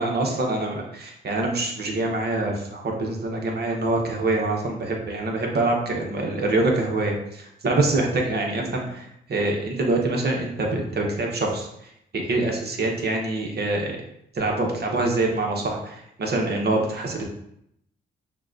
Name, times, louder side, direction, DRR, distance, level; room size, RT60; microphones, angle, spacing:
voice 1, 0.0-11.7 12.1-14.0 14.3-17.2, right 2 dB, 50° right, 1 dB, 1.0 m, -25 dB
5.7 x 2.3 x 2.6 m, 0.76 s
cardioid pair, 80°, 21 cm